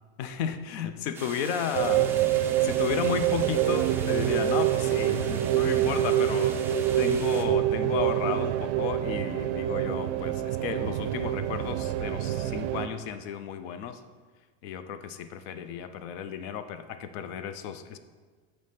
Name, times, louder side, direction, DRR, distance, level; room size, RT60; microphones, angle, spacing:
voice 1, 0.2-2.3 2.6-6.7 7.0-14.0 14.6-18.0, left 8 dB, 55° left, 11 dB, 0.6 m, -33 dB
sound 1, 1.1-7.4, right 4 dB, 5° right, 0.3 m, -42 dB
sound 2, 1.7-12.9, right 12 dB, 70° right, 0.5 m, -26 dB
7.0 x 3.3 x 5.7 m, 1.5 s
supercardioid pair, 135°, 36 cm